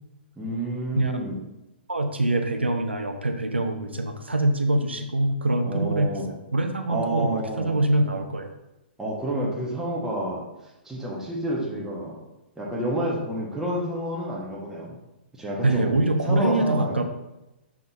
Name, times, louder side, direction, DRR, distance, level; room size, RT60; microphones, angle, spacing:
voice 1, 0.4-1.4 5.7-6.3 6.9-7.8 9.0-12.2 12.6-15.0 15.3-15.9 16.3-17.0, right 1 dB, 5° right, -5 dB, 1.2 m, -29 dB
voice 2, 1.9-6.1 6.5-8.5 15.6-17.0, right 2 dB, 80° right, 5 dB, 0.7 m, -24 dB
6.0 x 4.1 x 4.0 m, 0.94 s
figure-of-eight pair, 115°, 6 cm